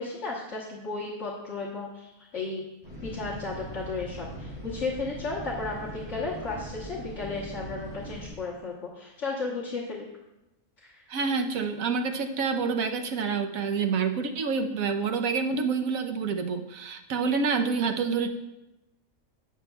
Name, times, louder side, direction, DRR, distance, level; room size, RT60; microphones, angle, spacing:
voice 1, 0.0-2.7 3.0-10.0 10.8-11.0, left 3 dB, 60° left, -5 dB, 1.5 m, -34 dB
sound 1, 2.8-8.3, right 1 dB, 35° right, 3.8 m, -40 dB
voice 2, 11.1-18.3, right 5 dB, 75° right, 5 dB, 1.2 m, -27 dB
17.0 x 6.6 x 2.3 m, 0.95 s
omnidirectional pair, 1.5 m